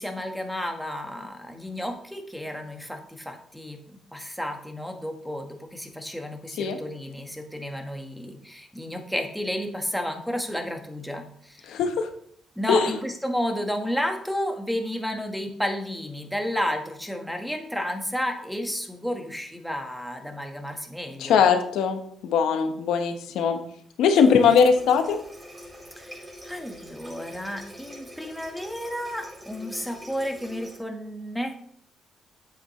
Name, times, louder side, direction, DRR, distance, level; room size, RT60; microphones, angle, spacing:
voice 1, 0.0-3.8 4.1-11.8 12.5-21.4 24.5-24.6 26.0-31.7, equal, ahead, 3 dB, 1.5 m, -32 dB
voice 2, 11.7-12.1 12.7-12.9 21.2-23.6 24.0-25.2, left 6 dB, 85° left, 6 dB, 1.1 m, -20 dB
Water tap faucet, 24.1-30.8, equal, 15° right, 4.0 m, -44 dB
8.6 x 7.9 x 3.2 m, 0.66 s
cardioid pair, 90°, 0 cm